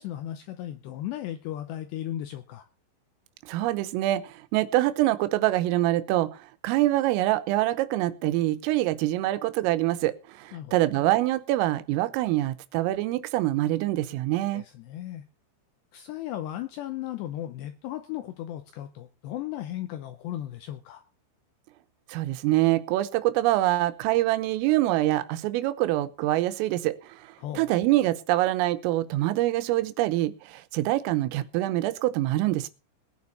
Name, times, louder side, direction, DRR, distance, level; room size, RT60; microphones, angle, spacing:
voice 1, 0.0-2.6 10.5-10.7 14.5-15.3 15.9-21.0 27.4-27.7, left 12 dB, 80° left, 9 dB, 2.5 m, -36 dB
voice 2, 3.5-4.2 4.5-6.3 6.6-10.1 10.4-14.6 22.1-27.0 27.6-30.3 30.7-32.7, right 16 dB, 90° right, 12 dB, 3.5 m, -25 dB
19.5 x 9.7 x 4.2 m, 0.34 s
omnidirectional pair, 5.8 m